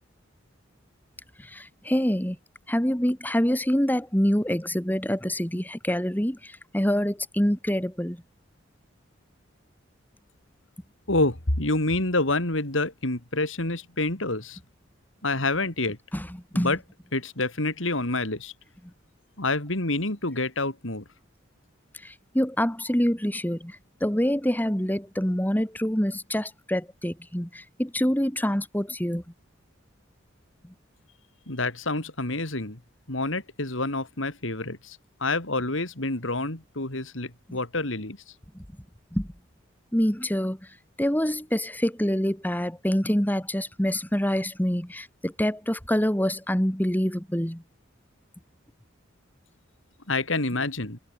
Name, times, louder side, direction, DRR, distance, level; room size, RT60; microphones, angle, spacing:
voice 1, 1.5-2.4 2.7-6.4 6.7-8.2 16.1-16.3 16.5-16.7 22.0-23.8 24.0-29.2 39.1-39.3 39.9-40.6 41.0-47.6, equal, 10° left, 2.3 m, -26 dB
voice 2, 11.1-14.6 15.2-16.0 16.5-16.8 17.1-18.5 19.4-21.0 31.5-32.8 33.1-38.2 50.1-51.0, left 2 dB, 75° left, 3.9 m, -27 dB
head